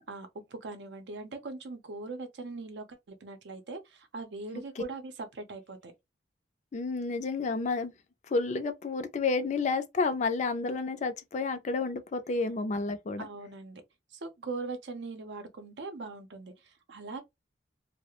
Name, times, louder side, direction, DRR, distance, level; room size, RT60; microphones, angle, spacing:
voice 1, 0.1-5.9 13.2-13.8 14.1-17.2, right 3 dB, 70° right, 0.6 m, -41 dB
voice 2, 4.5-4.8 6.7-7.9 8.3-13.3, left 3 dB, 40° left, 0.4 m, -30 dB
2.4 x 2.0 x 2.8 m
head